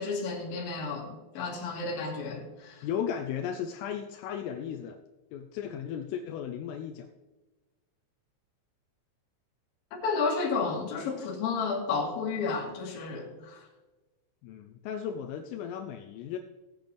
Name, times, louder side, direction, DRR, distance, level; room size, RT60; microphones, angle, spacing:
voice 1, 0.0-2.8 10.0-13.6, left 4 dB, 55° left, -2 dB, 3.3 m, -32 dB
voice 2, 2.8-5.0 5.3-7.1 14.4-16.4, left 8 dB, 85° left, 4 dB, 3.2 m, -35 dB
18.0 x 8.1 x 3.4 m, 1.2 s
omnidirectional pair, 5.9 m